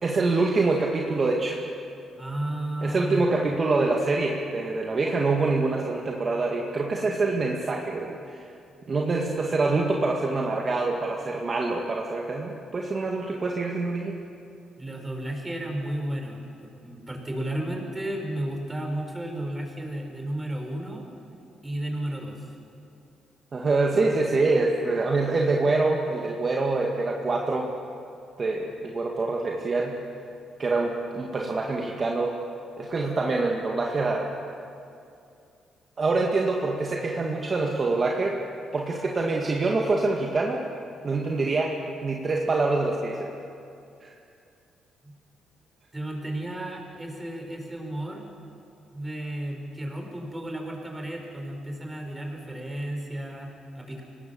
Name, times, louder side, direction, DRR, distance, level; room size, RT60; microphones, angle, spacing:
voice 1, 0.0-1.6 2.8-8.5 8.9-14.2 23.5-27.7 28.4-30.0 30.6-32.4 32.8-34.3 36.0-38.4 38.7-40.6 41.0-43.3 44.0-44.1, right 3 dB, 40° right, 0 dB, 2.1 m, -25 dB
voice 2, 2.2-3.3 14.8-21.1 21.6-22.5 45.0-45.1 45.9-48.2 48.9-54.0, right 1 dB, 15° right, 1 dB, 5.2 m, -33 dB
24.5 x 19.5 x 7.2 m, 2.6 s
cardioid pair, 90°, 0 cm